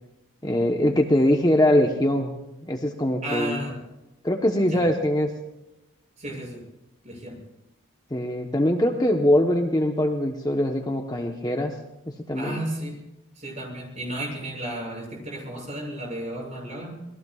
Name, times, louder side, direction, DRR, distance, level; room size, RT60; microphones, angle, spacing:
voice 1, 0.4-3.6 4.2-5.3 8.1-11.8 12.1-12.6, left 1 dB, 20° left, 2 dB, 1.0 m, -22 dB
voice 2, 3.2-3.8 4.7-4.8 6.2-6.6 7.0-7.4 12.3-13.0 13.4-16.9, right 1 dB, 35° right, -1 dB, 7.2 m, -33 dB
27.5 x 20.5 x 2.4 m, 0.97 s
head